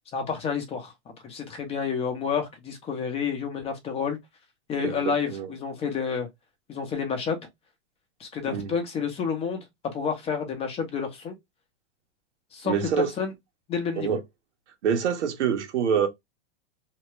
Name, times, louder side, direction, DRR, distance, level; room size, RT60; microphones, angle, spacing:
voice 1, 0.1-0.9 1.2-4.2 4.7-6.3 6.7-7.4 8.2-11.4 12.5-13.3 13.7-14.2, left 6 dB, 15° left, 0.6 m, -29 dB
voice 2, 4.8-5.5 8.5-8.7 12.6-13.1 14.0-14.2 14.8-16.1, right 7 dB, 85° right, 1.1 m, -26 dB
2.8 x 2.3 x 3.1 m
supercardioid pair, 145°, 34 cm